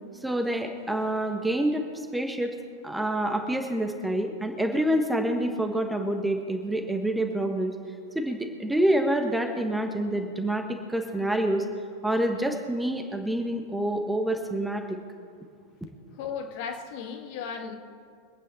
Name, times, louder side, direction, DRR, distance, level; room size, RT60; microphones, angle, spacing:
voice 1, 0.2-1.8 2.1-2.5 2.8-7.7 8.1-11.6 12.0-15.0, right 1 dB, 5° right, 4 dB, 1.4 m, -27 dB
voice 2, 16.1-17.8, left 6 dB, 50° left, 4 dB, 1.8 m, -35 dB
24.5 x 9.2 x 4.2 m, 2.4 s
figure-of-eight pair, 90°, 0 cm